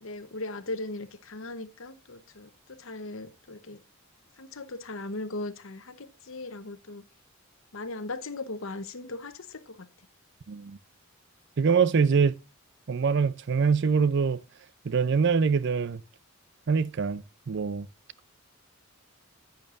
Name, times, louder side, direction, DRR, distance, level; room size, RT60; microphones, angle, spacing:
voice 1, 0.0-3.8 4.4-7.0 7.7-9.9, left 2 dB, 65° left, 0.9 m, -38 dB
voice 2, 10.5-10.8 11.6-12.4 12.9-14.4 14.8-16.0 16.7-17.9, right 5 dB, 50° right, 0.4 m, -24 dB
10.5 x 9.1 x 2.5 m
head